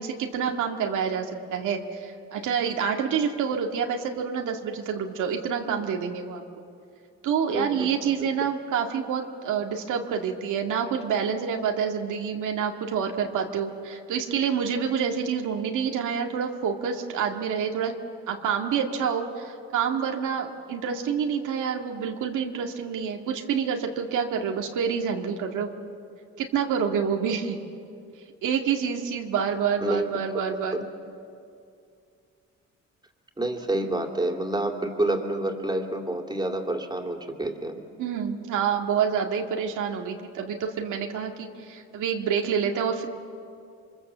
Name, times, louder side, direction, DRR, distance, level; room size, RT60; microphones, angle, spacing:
voice 1, 0.0-6.4 7.2-17.9 18.3-25.7 26.4-27.6 28.4-30.9 38.0-43.1, right 7 dB, 85° right, 2 dB, 2.0 m, -27 dB
voice 2, 7.5-7.9 29.8-30.1 30.7-30.9 33.4-37.8, right 2 dB, 15° right, 3 dB, 2.8 m, -28 dB
27.0 x 24.0 x 7.4 m, 2.5 s
cardioid pair, 90°, 30 cm